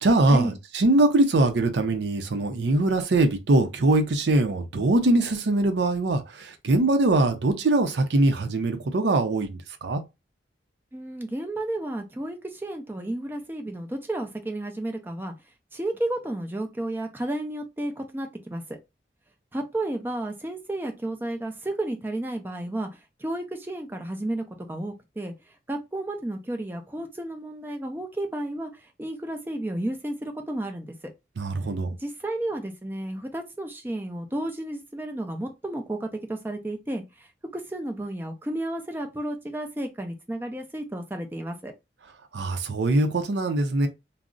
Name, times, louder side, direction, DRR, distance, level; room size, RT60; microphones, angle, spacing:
voice 1, 0.0-10.0 31.4-32.0 42.3-43.9, right 2 dB, 75° right, 0.5 m, -22 dB
voice 2, 10.9-15.3 15.7-18.8 19.5-22.9 23.2-25.3 25.7-31.0 32.0-41.7, right 1 dB, 10° right, 0.4 m, -32 dB
2.4 x 2.0 x 3.6 m
head